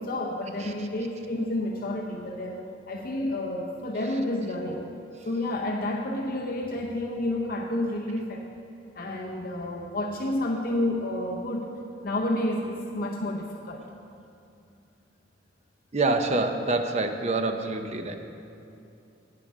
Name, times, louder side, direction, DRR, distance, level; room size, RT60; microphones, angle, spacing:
voice 1, 0.0-2.6 2.9-4.9 5.2-8.5 8.9-11.7 12.0-13.8, left 1 dB, 50° left, 0 dB, 0.7 m, -30 dB
voice 2, 15.9-18.2, right 2 dB, 35° right, 6 dB, 0.6 m, -26 dB
8.9 x 8.5 x 6.1 m, 2.7 s
head